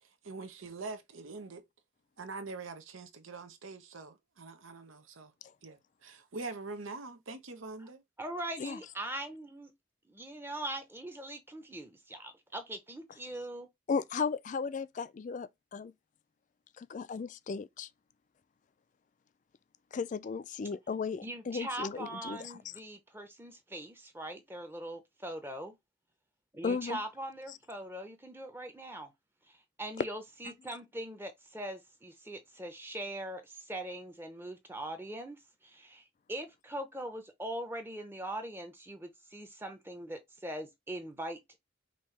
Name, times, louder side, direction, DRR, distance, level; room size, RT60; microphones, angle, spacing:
voice 1, 0.2-1.6 2.2-5.3 5.6-8.0, right 3 dB, 90° right, 0.9 m, -44 dB
voice 2, 8.2-9.7 10.1-13.7 21.2-25.8 26.5-29.1 29.5-35.4 35.6-41.6, right 1 dB, 10° right, 0.7 m, -41 dB
voice 3, 13.9-15.9 16.8-17.9 19.9-22.6 26.6-27.0 30.5-30.6, left 5 dB, 40° left, 0.3 m, -35 dB
5.3 x 2.8 x 3.2 m
head